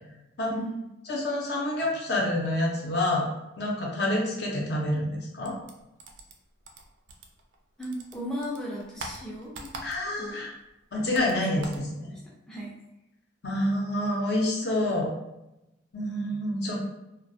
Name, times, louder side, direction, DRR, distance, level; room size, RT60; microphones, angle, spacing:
voice 1, 0.5-0.9 7.8-9.7 10.2-10.4 11.6-11.7 12.1-12.2 12.5-12.7, equal, 5° left, -6 dB, 0.3 m, -36 dB
voice 2, 1.1-3.3 3.6-5.5 9.8-10.5 10.9-12.1 13.4-15.1 15.9-16.8, left 1 dB, 60° left, -2 dB, 0.6 m, -27 dB
sound 1, 5.4-7.6 7.8-10.3 10.6-11.9, right 3 dB, 75° right, 0.4 m, -43 dB
2.3 x 2.1 x 2.6 m, 0.92 s
head